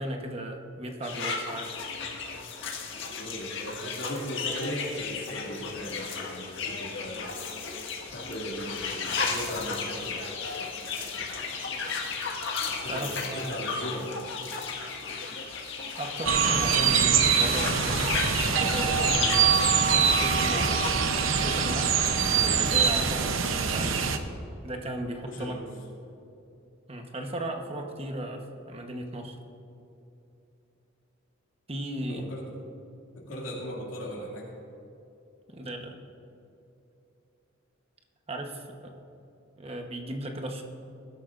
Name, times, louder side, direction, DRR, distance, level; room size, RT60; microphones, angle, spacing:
voice 1, 0.0-1.7 12.9-13.6 16.0-19.5 20.2-20.8 21.4-24.1 24.6-25.6 26.9-29.4 31.7-32.3 35.5-35.9 38.3-38.9 39.6-40.6, right 1 dB, 30° right, 3 dB, 1.1 m, -36 dB
sound 1, 1.0-20.9, left 4 dB, 65° left, 1.7 m, -34 dB
voice 2, 3.1-7.3 8.0-10.3 12.8-14.3 25.3-25.7 32.1-32.5 33.2-34.6, equal, 80° left, -4 dB, 2.4 m, -38 dB
sound 2, 16.2-24.2, right 6 dB, 75° right, 0.8 m, -24 dB
21.0 x 12.0 x 2.6 m, 2.8 s
head